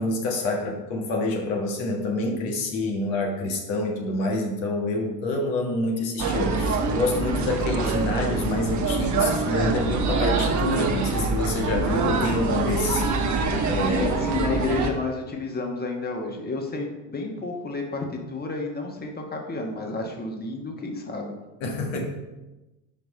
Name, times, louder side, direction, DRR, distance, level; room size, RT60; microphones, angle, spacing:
voice 1, 0.0-13.0 13.6-14.1 21.6-22.0, left 2 dB, 70° left, 1 dB, 1.5 m, -27 dB
sound 1, 6.2-14.9, right 4 dB, 35° right, 1.2 m, -25 dB
voice 2, 13.9-21.3, left 3 dB, 20° left, 2 dB, 1.3 m, -31 dB
5.6 x 4.6 x 5.5 m, 1.1 s
hypercardioid pair, 70°, 46 cm